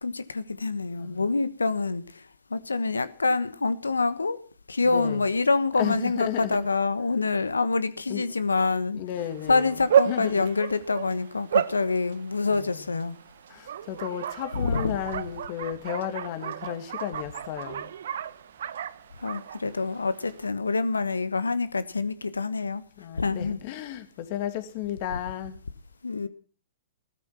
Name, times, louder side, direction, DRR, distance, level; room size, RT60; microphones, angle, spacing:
voice 1, 0.0-4.4 4.7-9.0 9.5-13.2 14.5-15.0 19.2-22.8 23.2-23.6 26.0-26.3, left 3 dB, 90° left, 1.2 m, -26 dB
voice 2, 4.8-5.2 5.8-6.6 8.1-8.2 9.0-9.7 10.1-10.5 12.5-12.7 13.5-17.9 23.0-25.6, left 11 dB, 45° left, 2.3 m, -33 dB
Bark, 9.2-20.5, right 10 dB, 65° right, 0.8 m, -32 dB
16.5 x 13.5 x 5.8 m
hypercardioid pair, 115°, 0 cm